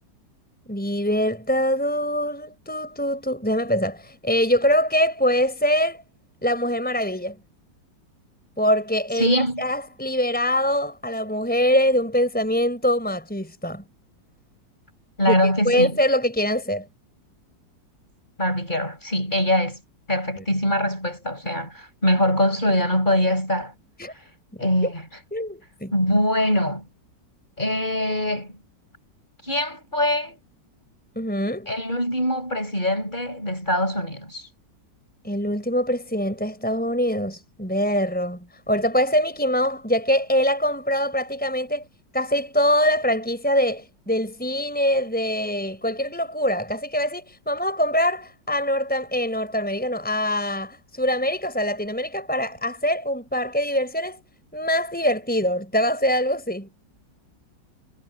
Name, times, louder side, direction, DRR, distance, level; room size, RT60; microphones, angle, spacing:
voice 1, 0.7-6.0 6.4-7.4 8.6-13.8 15.2-16.9 24.0-24.1 24.8-24.9 25.3-25.9 31.2-31.7 35.2-41.8 42.1-54.2 54.5-56.7, equal, 5° left, 4.6 m, -23 dB
voice 2, 9.2-9.6 15.2-16.0 18.4-19.8 20.1-23.7 24.6-25.1 25.9-26.9 27.6-28.6 29.4-30.4 31.7-34.5, left 1 dB, 25° left, 6.8 m, -23 dB
omnidirectional pair, 2.0 m